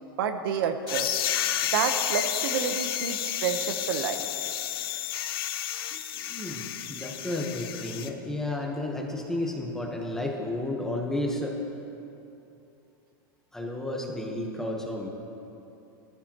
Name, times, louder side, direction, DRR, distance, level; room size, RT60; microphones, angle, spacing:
voice 1, 0.2-1.2 1.6-4.2, right 7 dB, 80° right, 7 dB, 1.0 m, -29 dB
sound 1, 0.9-8.1, left 11 dB, 85° left, 0.8 m, -31 dB
voice 2, 5.9-11.6 13.5-15.1, left 1 dB, 5° left, 0 dB, 1.2 m, -32 dB
17.5 x 14.0 x 3.0 m, 2.9 s
supercardioid pair, 160°, 12 cm